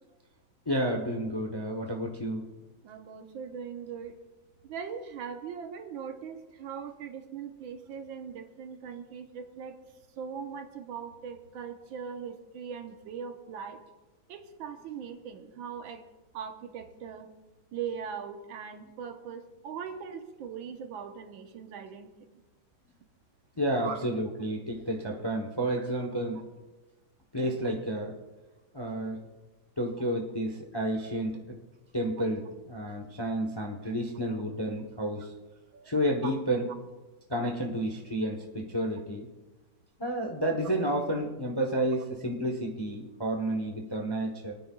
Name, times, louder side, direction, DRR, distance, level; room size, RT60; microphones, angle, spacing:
voice 1, 0.7-2.4 23.6-26.4 27.3-28.1 28.7-29.2 29.8-31.4 31.9-35.3 35.9-36.7 37.3-39.3 40.0-44.5, right 1 dB, 20° left, 2 dB, 0.6 m, -30 dB
voice 2, 2.8-4.2 4.6-9.7 10.2-13.8 14.3-16.0 16.3-17.3 17.7-22.2 23.8-24.0 25.8-25.9 35.7-35.9 36.2-36.3, right 7 dB, 85° right, 6 dB, 1.8 m, -40 dB
27.5 x 9.4 x 2.3 m, 1.2 s
omnidirectional pair, 2.1 m